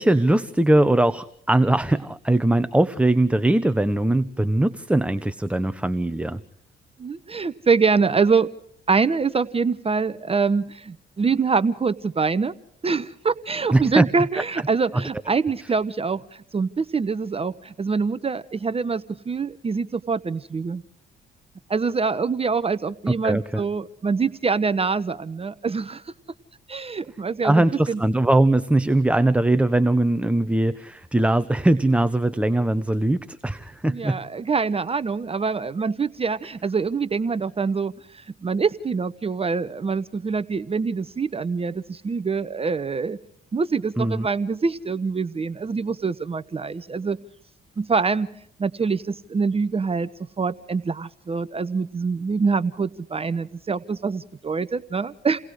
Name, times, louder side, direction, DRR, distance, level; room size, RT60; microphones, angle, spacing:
voice 1, 0.0-6.4 13.7-14.1 14.9-15.1 15.6-15.7 23.1-23.6 27.4-34.2 44.0-44.3, right 1 dB, 5° right, 12 dB, 1.0 m, -21 dB
voice 2, 7.0-8.5 8.9-12.5 12.8-20.8 21.7-26.1 26.7-28.0 33.9-43.2 43.5-47.2 47.8-48.3 48.6-50.1 50.4-55.4, right 5 dB, 30° right, 13 dB, 0.9 m, -25 dB
29.5 x 19.0 x 4.9 m, 0.66 s
cardioid pair, 90°, 20 cm